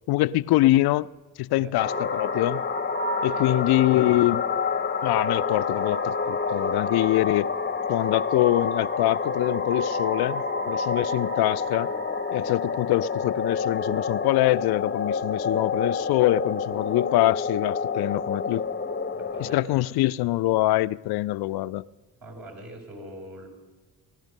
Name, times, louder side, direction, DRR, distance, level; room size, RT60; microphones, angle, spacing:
voice 1, 0.1-1.1 1.4-2.6 3.2-4.4 5.0-7.5 7.9-11.9 12.3-18.6 19.4-21.8, left 17 dB, 60° left, 0.5 m, -24 dB
sound 1, 1.8-19.6, left 5 dB, 25° left, 0.8 m, -28 dB
voice 2, 3.3-4.5 19.1-19.9 22.2-23.5, right 1 dB, 50° right, 4.0 m, -43 dB
17.5 x 11.5 x 5.4 m
hypercardioid pair, 50°, 43 cm